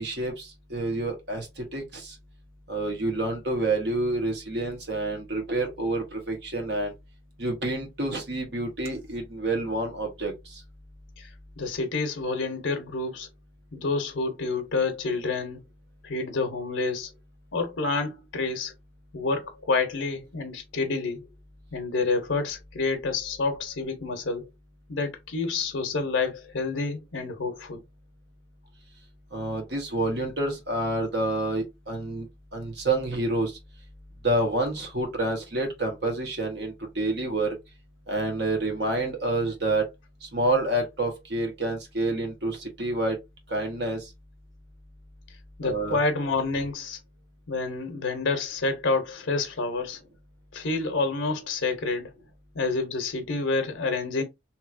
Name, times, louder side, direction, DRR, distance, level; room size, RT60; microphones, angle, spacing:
voice 1, 0.0-2.1 2.7-6.9 7.4-10.6 29.3-32.3 32.5-33.6 34.2-37.6 38.1-39.9 40.2-43.2 43.5-44.1 45.6-46.0, right 2 dB, 55° right, 1.1 m, -28 dB
voice 2, 11.6-13.3 13.7-15.6 16.0-17.1 17.5-18.7 19.1-21.3 21.7-24.5 24.9-27.8 45.6-47.0 47.5-50.0 50.5-52.1 52.5-54.2, left 3 dB, 80° left, 0.7 m, -28 dB
3.0 x 2.7 x 2.5 m
head